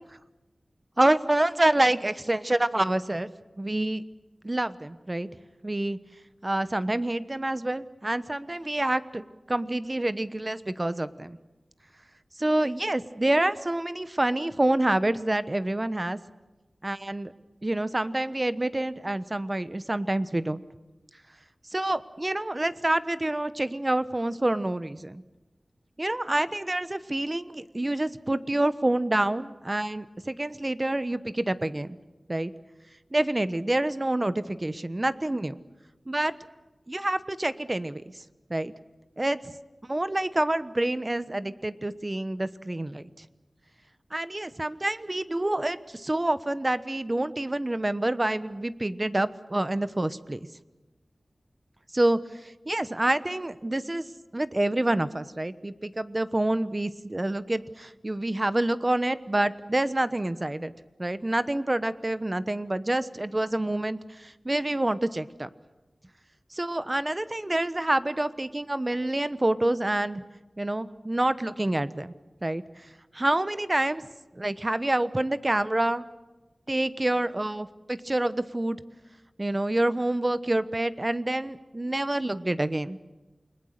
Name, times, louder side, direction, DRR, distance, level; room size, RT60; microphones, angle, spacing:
voice 1, 1.0-3.3 3.6-4.0 4.4-5.3 5.6-6.0 6.4-11.4 12.4-16.2 16.8-17.3 17.6-20.6 21.7-25.2 26.0-32.0 32.3-32.5 33.1-35.6 36.1-36.3 36.9-38.0 38.5-38.7 39.2-39.4 39.9-43.1 44.1-50.4 51.9-54.0 54.3-60.7 61.0-65.5 66.5-70.2 70.6-72.1 72.4-72.6 73.1-74.1 74.4-76.1 76.7-78.8 79.4-83.0, right 1 dB, 30° right, 13 dB, 1.0 m, -27 dB
28.5 x 21.0 x 6.6 m, 1.1 s
wide cardioid pair, 65°, 0 cm